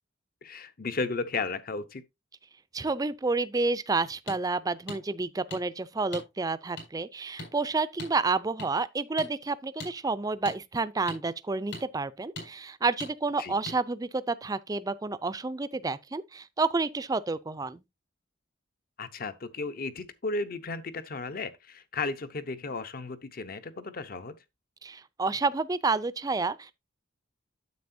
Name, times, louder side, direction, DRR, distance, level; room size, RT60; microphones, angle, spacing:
voice 1, 0.4-2.0 13.4-13.5 19.0-24.4, left 3 dB, 50° left, 0.8 m, -34 dB
voice 2, 2.7-17.8 24.8-26.7, right 3 dB, 20° right, 0.4 m, -30 dB
sound 1, 4.3-4.4 4.9-5.0 5.5-5.6 6.1-6.3 6.8-6.9 7.4-7.5 8.0-8.1 8.6-8.7 9.2-9.3 9.8-9.9 10.5-10.6 11.1-11.2 11.7-11.8 12.4-12.5 13.0-13.1 13.7-13.8, left 2 dB, 65° left, 4.9 m, -39 dB
9.5 x 7.6 x 2.6 m
head